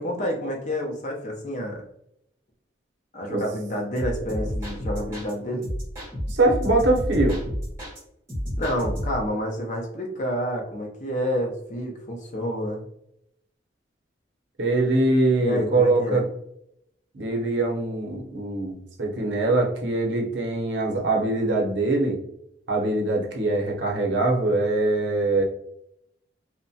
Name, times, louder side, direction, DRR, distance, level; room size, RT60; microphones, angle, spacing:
voice 1, 0.0-1.8 3.1-5.7 8.6-12.9 15.4-16.2, equal, 40° left, 1 dB, 0.5 m, -29 dB
sound 1, 4.0-5.3 5.6-8.0 8.3-9.3, equal, 15° right, 1.1 m, -30 dB
voice 2, 6.3-7.4 14.6-16.2 17.1-22.2 22.7-25.4, right 2 dB, 75° right, 0 dB, 0.6 m, -23 dB
2.7 x 2.1 x 2.6 m, 0.76 s
head